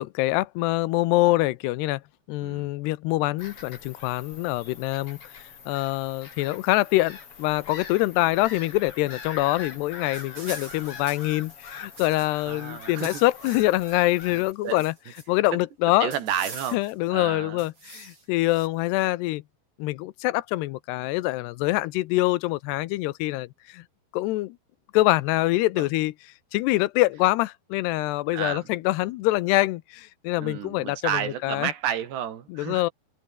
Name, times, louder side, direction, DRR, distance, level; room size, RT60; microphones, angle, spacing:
voice 1, 0.0-2.0 2.3-5.3 5.7-14.9 15.3-16.1 16.7-19.4 19.8-23.8 24.1-24.6 24.9-26.1 26.5-31.7 32.5-32.9, left 18 dB, 90° left, 2.8 m, -25 dB
Bird vocalization bird call bird song / Gull seagull, 3.4-14.5, left 6 dB, 35° left, 3.4 m, -43 dB
sound 1, 10.1-12.5 12.7-14.0 14.3-15.5 16.1-17.1 17.6-18.7, right 3 dB, 30° right, 8.4 m, -44 dB
voice 2, 12.5-13.2 14.6-14.8 15.5-15.6 16.0-16.8 17.1-17.7 25.8-25.9 28.3-28.7 30.4-32.8, right 9 dB, 80° right, 4.7 m, -31 dB
open air
omnidirectional pair, 4.8 m